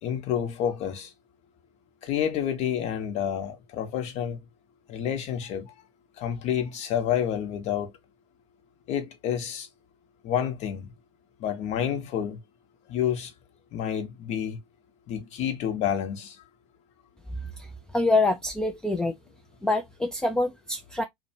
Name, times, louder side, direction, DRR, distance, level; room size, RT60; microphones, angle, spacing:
voice 1, 0.0-1.1 2.0-4.4 4.9-5.7 6.2-7.9 8.9-9.7 10.2-10.9 11.4-12.4 12.9-13.3 13.7-14.6 15.1-16.4, left 9 dB, 45° left, 0.9 m, -29 dB
voice 2, 17.4-19.2 19.6-21.0, left 2 dB, 5° left, 0.3 m, -26 dB
2.7 x 2.1 x 2.7 m
hypercardioid pair, 90°, 15 cm